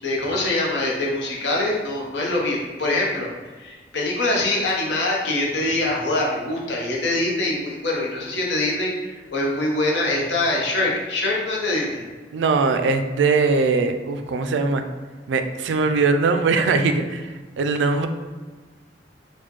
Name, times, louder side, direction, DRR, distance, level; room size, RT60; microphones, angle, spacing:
voice 1, 0.0-3.3 3.6-12.0, left 2 dB, 80° left, -2 dB, 0.8 m, -24 dB
voice 2, 12.3-14.8 15.3-18.1, right 4 dB, 85° right, 8 dB, 0.3 m, -21 dB
4.2 x 2.2 x 2.9 m, 1.3 s
head